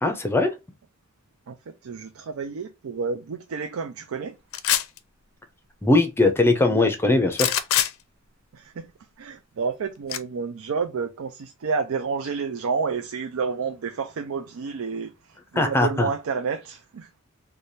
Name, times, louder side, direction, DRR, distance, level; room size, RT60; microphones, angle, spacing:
voice 1, 0.0-0.5 5.8-7.5 15.6-16.1, left 2 dB, 10° left, 0.6 m, -20 dB
voice 2, 1.5-4.4 8.5-8.9 9.2-17.1, right 5 dB, 75° right, 0.4 m, -30 dB
sound 1, 4.5-5.0 7.3-7.9 10.1-10.2, left 11 dB, 70° left, 0.5 m, -22 dB
3.3 x 2.2 x 4.0 m
head